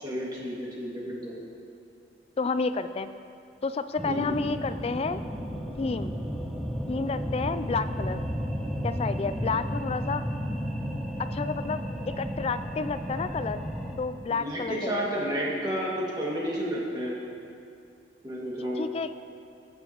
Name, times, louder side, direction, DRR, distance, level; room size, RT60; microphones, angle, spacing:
voice 1, 0.0-1.4 4.0-4.3 14.3-17.2 18.2-18.8, equal, 25° right, -5 dB, 2.1 m, -31 dB
voice 2, 2.4-3.1 3.6-5.2 5.8-6.2 6.9-8.2 8.8-10.2 11.2-13.7 14.0-15.3 18.8-19.1, left 4 dB, 35° left, 11 dB, 0.3 m, -30 dB
sound 1, 4.0-14.0, equal, ahead, 0.8 m, -33 dB
19.0 x 7.1 x 3.0 m, 2.5 s
head